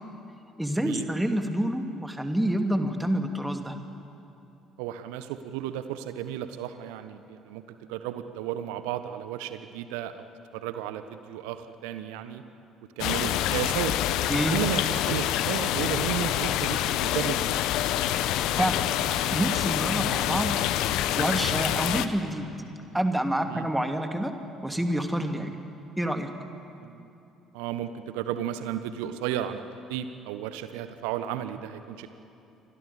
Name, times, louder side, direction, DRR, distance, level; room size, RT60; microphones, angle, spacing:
voice 1, 0.6-3.8 14.3-14.6 18.6-18.8 19.3-20.6 21.1-22.5 22.9-24.3 24.6-25.6 26.0-26.3, right 1 dB, 5° right, 5 dB, 2.8 m, -27 dB
voice 2, 4.8-10.2 10.5-12.4 13.0-13.9 14.5-17.9 23.4-23.7 26.8-27.1 27.5-32.1, right 11 dB, 65° right, 10 dB, 1.3 m, -34 dB
sound 1, 13.0-22.1, left 12 dB, 60° left, 1.0 m, -26 dB
28.0 x 25.0 x 7.3 m, 2.8 s
figure-of-eight pair, 50°, 0 cm